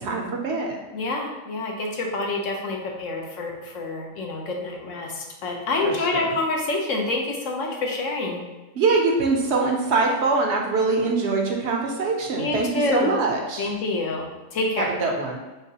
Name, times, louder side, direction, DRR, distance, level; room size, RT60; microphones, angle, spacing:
voice 1, 0.0-0.8 5.8-6.2 8.8-13.7 14.8-15.4, right 3 dB, 65° right, 1 dB, 0.8 m, -23 dB
voice 2, 0.9-8.4 12.3-13.2 13.6-14.9, left 2 dB, 75° left, 1 dB, 1.1 m, -27 dB
3.8 x 3.6 x 2.8 m, 1.2 s
omnidirectional pair, 1.3 m